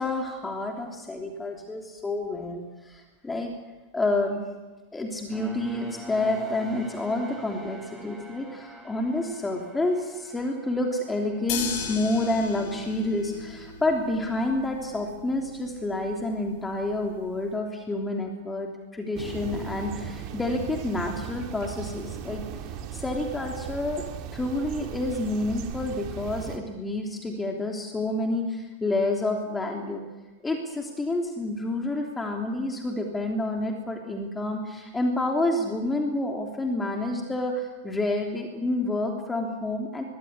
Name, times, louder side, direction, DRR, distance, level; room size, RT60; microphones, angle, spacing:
voice 1, 0.0-3.5 3.9-4.4 4.9-22.4 22.9-24.0 24.3-30.0 30.4-40.0, left 2 dB, 10° left, 2 dB, 3.3 m, -29 dB
sound 1, 5.3-12.5, right 1 dB, 10° right, 6.1 m, -45 dB
sound 2, 11.5-17.5, left 6 dB, 45° left, 7.2 m, -38 dB
sound 3, 19.1-26.6, right 9 dB, 40° right, 2.6 m, -37 dB
25.0 x 21.5 x 8.5 m, 1.2 s
figure-of-eight pair, 90°, 0 cm